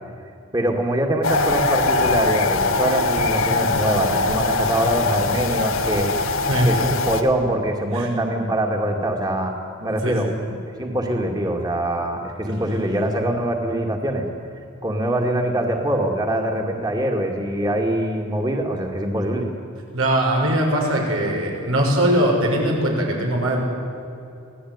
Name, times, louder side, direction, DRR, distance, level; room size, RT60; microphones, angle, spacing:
voice 1, 0.5-6.3 6.6-9.5 9.8-14.3 14.8-19.5, right 1 dB, 20° right, 2 dB, 2.3 m, -23 dB
sound 1, 1.2-7.2, left 3 dB, 90° left, 1.8 m, -21 dB
voice 2, 19.9-23.6, right 1 dB, 90° right, 0 dB, 6.4 m, -20 dB
26.0 x 17.0 x 9.6 m, 2.7 s
head